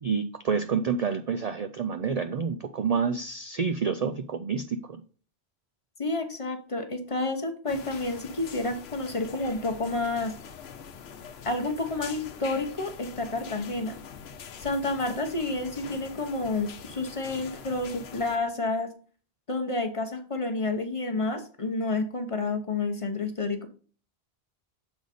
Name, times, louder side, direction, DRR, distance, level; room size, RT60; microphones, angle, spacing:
voice 1, 0.0-5.0, right 6 dB, 55° right, 9 dB, 0.4 m, -28 dB
voice 2, 6.0-10.3 11.4-13.9 14.6-18.9 19.5-23.7, left 2 dB, 35° left, 6 dB, 0.8 m, -30 dB
sound 1, 7.7-18.4, left 7 dB, 80° left, 0.9 m, -44 dB
7.1 x 3.9 x 4.9 m, 0.40 s
omnidirectional pair, 1.1 m